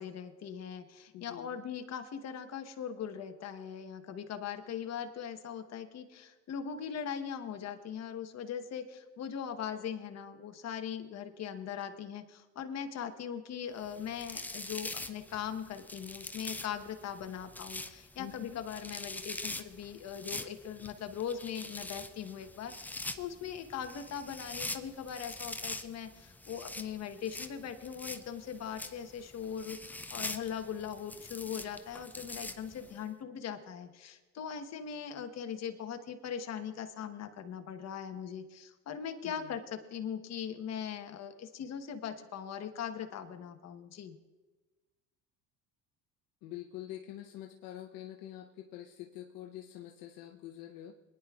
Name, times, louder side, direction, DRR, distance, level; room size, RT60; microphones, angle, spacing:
voice 1, 0.0-44.2, left 8 dB, 45° left, 7 dB, 1.1 m, -40 dB
voice 2, 1.1-1.6 18.2-18.6 39.2-39.6 46.4-50.9, left 13 dB, 65° left, 3 dB, 0.8 m, -46 dB
sound 1, 13.8-33.0, left 2 dB, 5° left, 0.4 m, -44 dB
23.5 x 10.0 x 2.4 m, 1.2 s
supercardioid pair, 85°, 37 cm